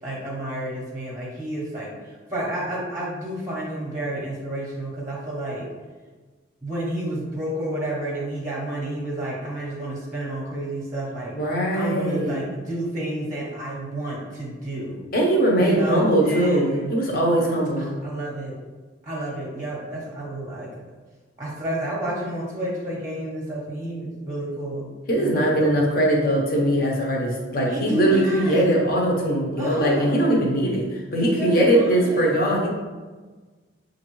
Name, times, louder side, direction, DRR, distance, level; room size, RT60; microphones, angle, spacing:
voice 1, 0.0-5.7 6.6-11.3 11.7-15.0 15.6-17.0 17.8-18.5 19.0-20.7 21.4-25.7 27.7-28.6 29.6-30.2 31.2-32.4, right 1 dB, 15° right, -4 dB, 0.8 m, -30 dB
voice 2, 11.3-12.4 15.1-17.9 25.1-30.8 31.1-32.8, right 1 dB, 45° left, -2 dB, 0.9 m, -21 dB
6.5 x 2.6 x 3.0 m, 1.3 s
head